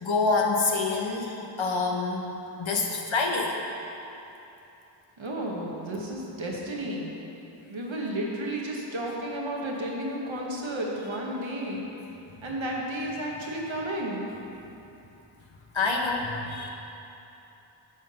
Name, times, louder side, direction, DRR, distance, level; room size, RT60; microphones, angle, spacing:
voice 1, 0.0-2.3 2.6-3.5 15.7-16.7, left 3 dB, 80° left, 0 dB, 1.2 m, -26 dB
voice 2, 5.2-7.2 7.7-11.8 12.4-14.3, right 1 dB, 80° right, -2 dB, 1.5 m, -32 dB
9.3 x 6.0 x 5.5 m, 3.0 s
wide cardioid pair, 50°, 46 cm